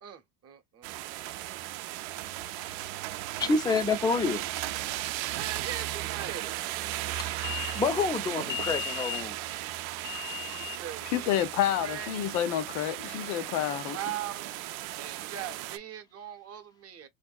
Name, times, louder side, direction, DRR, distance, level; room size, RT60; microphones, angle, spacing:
voice 1, 0.0-1.0 5.4-6.6 10.5-12.1 13.7-14.5 14.9-17.1, right 9 dB, 35° right, 0.7 m, -40 dB
sound 1, 0.8-15.8, right 15 dB, 80° right, 0.5 m, -36 dB
voice 2, 3.4-4.5 7.1-9.5 10.0-10.8 13.5-13.6, left 4 dB, 10° left, 0.4 m, -29 dB
voice 3, 11.1-14.0, left 11 dB, 80° left, 0.7 m, -29 dB
3.5 x 2.6 x 2.2 m
supercardioid pair, 120°, 42 cm